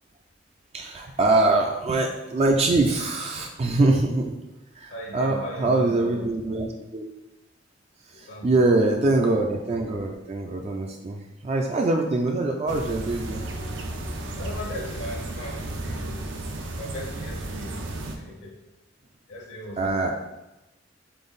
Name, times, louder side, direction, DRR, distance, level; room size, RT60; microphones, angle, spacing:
voice 1, 0.7-4.3 4.7-7.1 8.1-13.5 16.5-16.7 19.8-20.1, right 2 dB, 35° right, 2 dB, 0.3 m, -24 dB
voice 2, 4.9-6.3 8.1-8.6 14.3-16.2 16.8-17.8 18.2-18.5 19.3-20.1, left 1 dB, 65° left, 0 dB, 0.8 m, -38 dB
sound 1, 12.7-18.2, right 1 dB, 75° right, 0.6 m, -33 dB
3.9 x 3.4 x 3.9 m, 0.99 s
head